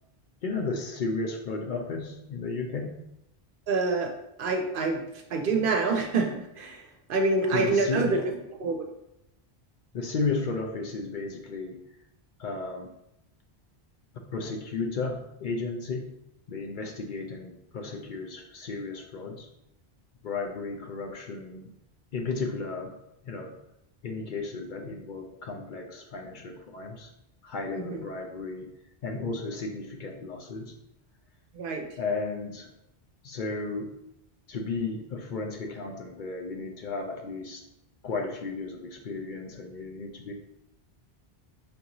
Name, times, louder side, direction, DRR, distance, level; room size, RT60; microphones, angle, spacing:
voice 1, 0.4-2.9 5.5-5.7 7.5-8.2 9.9-11.8 12.4-12.9 14.3-16.1 16.5-19.5 20.2-21.7 22.1-22.9 23.2-23.5 24.0-27.1 27.4-28.7 29.0-30.7 32.0-32.7 33.2-33.9 34.5-37.6 38.0-40.3, left 3 dB, 60° left, 2 dB, 0.6 m, -34 dB
voice 2, 3.7-4.1 4.4-6.8 7.1-8.2 8.6-8.8 27.7-28.0 31.5-31.8, right 3 dB, 65° right, 3 dB, 0.7 m, -26 dB
5.3 x 2.6 x 2.9 m, 0.84 s
omnidirectional pair, 1.1 m